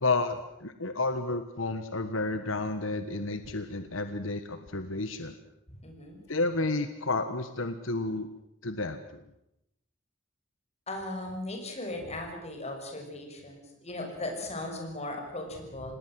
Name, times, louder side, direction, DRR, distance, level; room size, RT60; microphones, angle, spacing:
voice 1, 0.0-5.4 6.3-8.3 8.6-9.2, left 3 dB, 75° left, 9 dB, 1.4 m, -31 dB
voice 2, 5.8-6.2 10.9-16.0, left 1 dB, 35° left, 3 dB, 6.4 m, -37 dB
27.0 x 19.0 x 7.7 m, 0.85 s
head